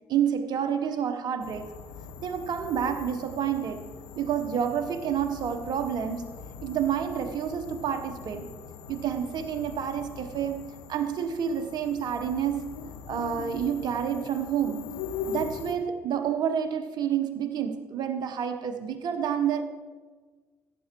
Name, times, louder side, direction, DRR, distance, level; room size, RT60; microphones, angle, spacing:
voice 1, 0.1-1.7 2.2-3.9 4.1-6.3 6.6-8.5 8.9-12.7 13.1-15.0 15.3-19.6, right 8 dB, 55° right, 7 dB, 1.0 m, -29 dB
sound 1, 1.4-15.8, left 5 dB, 75° left, 0.7 m, -41 dB
17.0 x 8.4 x 3.0 m, 1.4 s
hypercardioid pair, 45°, 9 cm